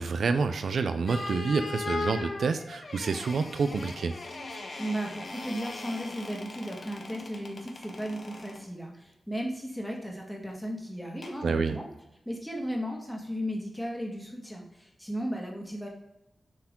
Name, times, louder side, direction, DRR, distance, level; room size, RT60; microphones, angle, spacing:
voice 1, 0.0-4.2 11.4-11.8, right 4 dB, 75° right, 9 dB, 0.4 m, -28 dB
sound 1, 1.1-8.6 11.2-11.4, left 3 dB, 55° left, 1.2 m, -39 dB
voice 2, 4.8-11.9 12.2-15.9, equal, 5° left, 0 dB, 1.6 m, -35 dB
7.4 x 4.7 x 3.6 m, 0.90 s
wide cardioid pair, 95°, 0 cm